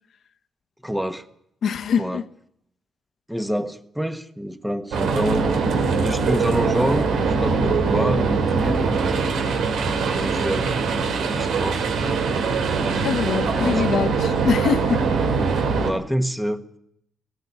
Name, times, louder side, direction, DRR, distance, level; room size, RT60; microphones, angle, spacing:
voice 1, 0.8-1.3 2.0-2.2 3.3-8.9 9.8-10.7 11.0-11.9 13.4-13.9 15.8-16.6, equal, 5° right, 9 dB, 1.4 m, -27 dB
voice 2, 1.6-2.2 13.0-15.0, left 7 dB, 65° left, 7 dB, 1.2 m, -23 dB
sound 1, 4.9-15.9, right 4 dB, 80° right, 3.3 m, -22 dB
18.0 x 15.5 x 9.4 m, 0.73 s
cardioid pair, 110°, 0 cm